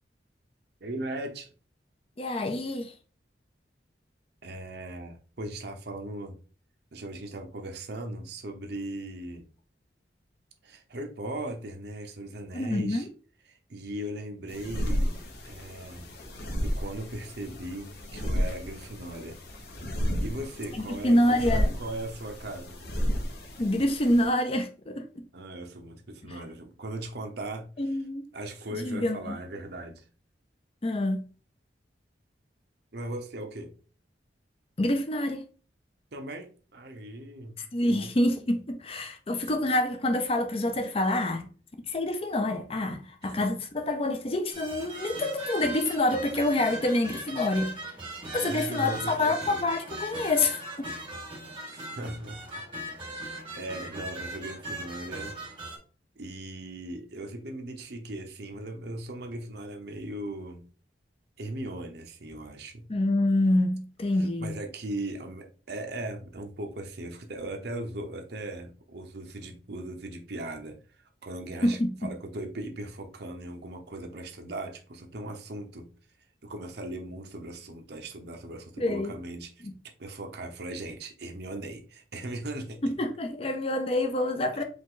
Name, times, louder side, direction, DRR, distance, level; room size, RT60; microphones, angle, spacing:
voice 1, 0.8-1.5 4.4-6.4 6.9-9.4 10.6-13.1 13.5-15.2 15.4-16.1 16.6-19.4 20.2-22.8 25.3-28.0 28.3-30.0 32.9-33.7 36.1-37.6 37.9-38.1 43.2-43.3 48.3-49.6 51.7-52.6 53.0-55.3 56.2-60.7 61.4-62.9 64.2-70.8 71.2-75.9 76.4-79.7 80.0-82.8 84.5-84.6, right 1 dB, 65° right, 0.8 m, -38 dB
voice 2, 2.2-2.9 12.5-13.1 20.7-21.7 23.6-25.3 27.8-28.3 28.7-29.4 30.8-31.2 34.8-35.4 37.6-41.5 41.8-47.8 48.3-50.9 62.9-64.6 71.6-72.1 78.8-79.2 79.6-79.7 82.8-84.6, left 1 dB, 35° left, 0.6 m, -27 dB
sound 1, 14.5-24.3, equal, 60° left, 1.1 m, -32 dB
sound 2, 44.5-55.8, right 1 dB, 30° right, 1.9 m, -39 dB
5.0 x 2.5 x 3.9 m
head